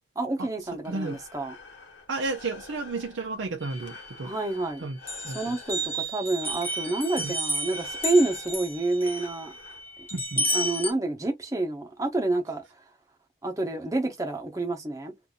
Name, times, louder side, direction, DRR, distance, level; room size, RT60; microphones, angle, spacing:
voice 1, 0.2-1.5 4.2-4.9 5.2-9.5 10.4-12.6 13.4-15.1, right 2 dB, 15° right, 0.9 m, -28 dB
Breathing, 0.6-10.2, left 4 dB, 75° left, 1.2 m, -49 dB
voice 2, 0.9-1.2 2.1-4.3 4.8-5.0 5.3-5.5 7.2-7.3 10.1-10.4, right 3 dB, 80° right, 0.6 m, -32 dB
sound 1, 3.6-4.7 5.1-10.9, equal, 10° left, 0.9 m, -32 dB
2.6 x 2.6 x 3.7 m
head